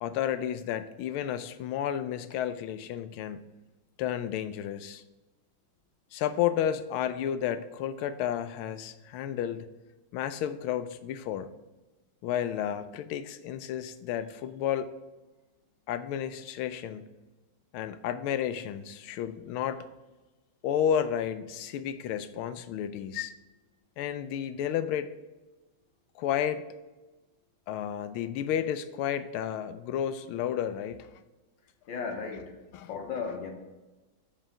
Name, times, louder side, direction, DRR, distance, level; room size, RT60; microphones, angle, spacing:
voice 1, 0.0-3.5 4.0-5.0 6.1-9.7 10.1-11.5 12.2-14.9 15.9-17.1 17.7-19.8 20.6-23.3 24.0-25.1 26.2-26.7 27.7-31.1 32.7-32.9, left 9 dB, 85° left, 1.5 m, -32 dB
voice 2, 31.9-32.6 32.9-33.5, left 5 dB, 65° left, 1.8 m, -35 dB
7.6 x 5.0 x 4.4 m
omnidirectional pair, 2.3 m